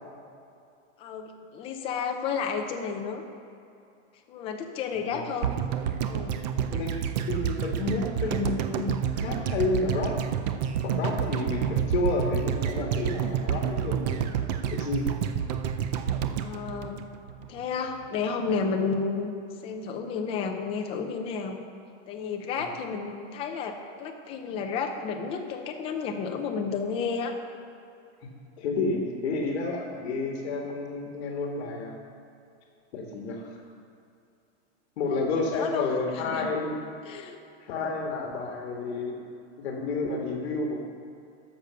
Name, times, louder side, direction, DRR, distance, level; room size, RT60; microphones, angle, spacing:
voice 1, 1.0-3.2 4.3-5.6 6.1-6.4 16.3-17.0 17.5-19.3 19.6-21.6 22.1-27.4 35.5-36.5 37.0-37.4, left 5 dB, 15° left, 4 dB, 0.5 m, -32 dB
voice 2, 4.9-5.3 6.7-10.2 10.8-15.1 28.2-28.3 28.6-32.0 32.9-33.5 35.0-36.8 37.6-39.2 39.6-40.8, left 3 dB, 60° left, 1 dB, 1.6 m, -30 dB
sound 1, 5.4-17.6 17.9-18.0, right 8 dB, 35° right, 0.4 m, -29 dB
10.0 x 6.8 x 6.8 m, 2.6 s
supercardioid pair, 165°, 36 cm